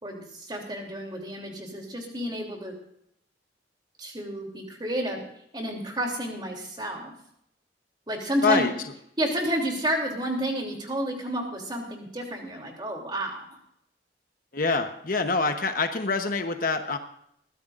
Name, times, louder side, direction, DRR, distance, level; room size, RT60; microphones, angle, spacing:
voice 1, 0.0-2.7 4.0-5.3 5.5-7.1 8.1-8.7 9.2-13.5, right 1 dB, 25° right, 1 dB, 3.0 m, -30 dB
voice 2, 14.5-17.0, left 4 dB, 45° left, 6 dB, 1.0 m, -25 dB
21.5 x 15.0 x 2.5 m, 0.72 s
head